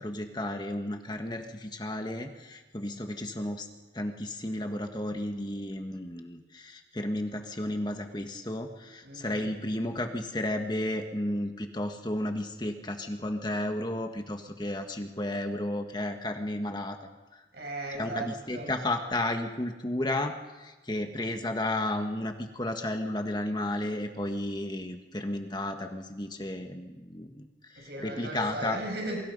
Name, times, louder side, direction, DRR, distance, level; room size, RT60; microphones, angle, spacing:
voice 1, 0.0-3.7 3.9-17.0 18.0-20.3 20.6-27.5 27.7-28.8, left 1 dB, 25° left, 5 dB, 1.6 m, -33 dB
voice 2, 9.0-9.5 17.5-18.7 27.8-29.2, right 2 dB, 60° right, 2 dB, 7.1 m, -37 dB
28.5 x 24.0 x 5.5 m, 1.2 s
head